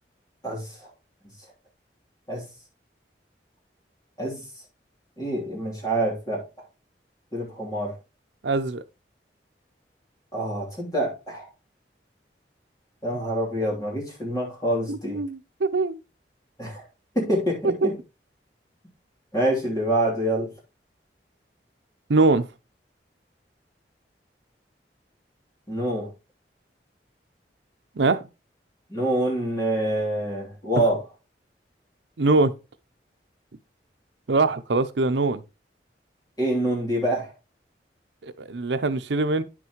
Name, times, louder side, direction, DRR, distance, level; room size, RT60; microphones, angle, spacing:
voice 1, 0.4-0.9 2.3-2.4 4.2-4.4 5.2-6.4 7.3-8.0 10.3-11.5 13.0-15.2 16.6-16.8 17.1-18.0 19.3-20.5 25.7-26.1 28.9-31.0 36.4-37.3, right 1 dB, 20° left, 3.1 m, -26 dB
voice 2, 8.4-8.8 14.9-16.0 17.8-17.9 22.1-22.5 28.0-28.2 32.2-32.5 34.3-35.4 38.2-39.4, right 3 dB, 85° right, 0.7 m, -22 dB
9.8 x 6.0 x 3.0 m
head